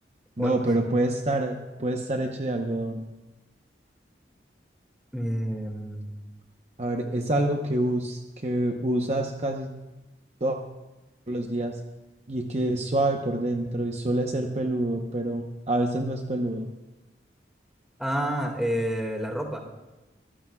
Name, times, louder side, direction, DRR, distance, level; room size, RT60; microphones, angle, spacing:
voice 1, 0.4-3.0 6.8-9.7 10.4-10.6 11.3-11.8 12.3-16.7, right 1 dB, 35° right, 2 dB, 0.8 m, -27 dB
voice 2, 5.1-6.1 18.0-19.6, equal, 5° right, 1 dB, 1.9 m, -29 dB
24.0 x 15.0 x 2.3 m, 1.1 s
head